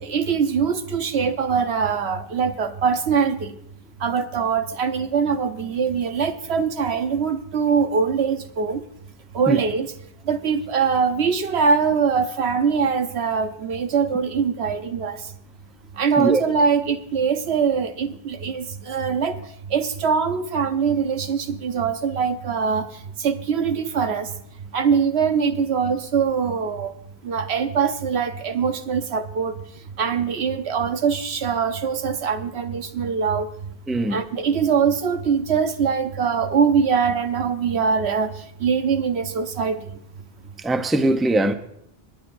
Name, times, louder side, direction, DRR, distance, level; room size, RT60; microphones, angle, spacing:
voice 1, 0.0-3.5 4.0-8.8 9.3-9.9 10.3-15.2 16.0-19.4 19.7-22.9 23.2-24.3 24.7-26.9 27.2-29.5 30.0-33.5 34.1-38.3 38.6-39.8, right 6 dB, 90° right, 1.2 m, -22 dB
voice 2, 33.9-34.2 40.6-41.5, right 2 dB, ahead, 0.5 m, -21 dB
28.0 x 9.8 x 2.6 m
omnidirectional pair, 1.0 m